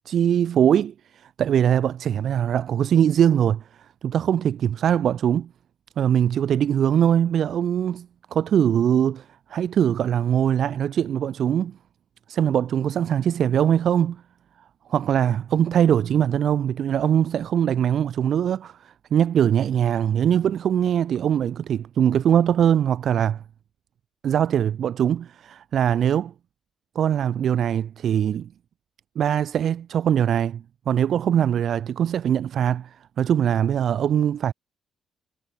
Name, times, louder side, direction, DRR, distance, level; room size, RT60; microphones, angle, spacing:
voice 1, 0.0-3.6 4.0-5.5 6.0-11.8 12.3-14.2 14.9-23.4 24.2-26.3 26.9-28.5 29.1-34.5, right 9 dB, 65° right, 1.2 m, -22 dB
cardioid pair, 90°, 0 cm